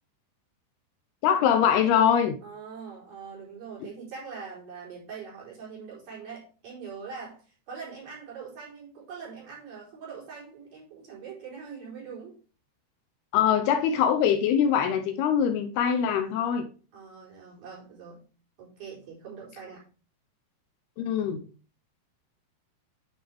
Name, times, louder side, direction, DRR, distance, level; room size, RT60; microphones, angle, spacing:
voice 1, 1.2-2.4 13.3-16.7 21.0-21.4, left 8 dB, 80° left, 2.6 m, -23 dB
voice 2, 2.4-7.4 7.7-12.3 16.9-18.3 18.6-19.8, right 6 dB, 50° right, 5.6 m, -42 dB
9.5 x 6.1 x 3.5 m
omnidirectional pair, 4.8 m